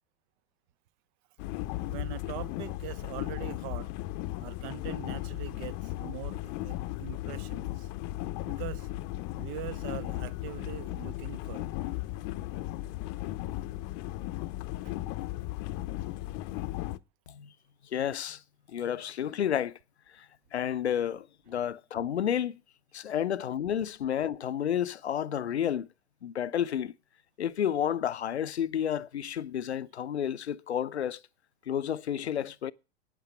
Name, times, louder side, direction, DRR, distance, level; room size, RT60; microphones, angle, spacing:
sound 1, 1.4-17.0, left 16 dB, 45° left, 0.7 m, -36 dB
voice 1, 1.8-3.9 4.4-7.9 8.4-8.9 9.4-11.7 14.8-15.0 23.1-23.2, right 15 dB, 45° right, 0.7 m, -42 dB
voice 2, 17.8-18.4 18.7-19.8 20.1-22.6 22.9-25.9 26.2-26.9 27.4-31.2 31.7-32.7, left 9 dB, 85° left, 0.6 m, -31 dB
9.0 x 8.3 x 8.8 m
hypercardioid pair, 100°, 32 cm